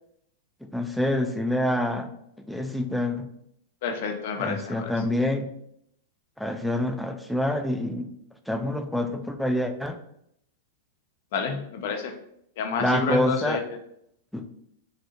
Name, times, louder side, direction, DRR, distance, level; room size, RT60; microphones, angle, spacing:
voice 1, 0.7-2.1 2.5-3.3 4.4-5.5 6.4-8.1 8.5-10.0 12.8-13.6 14.3-14.5, left 1 dB, ahead, 5 dB, 0.3 m, -26 dB
voice 2, 3.8-4.9 11.3-12.1 12.6-13.6, left 5 dB, 65° left, 5 dB, 0.5 m, -29 dB
3.2 x 2.6 x 2.8 m, 0.74 s
hypercardioid pair, 120°, 0 cm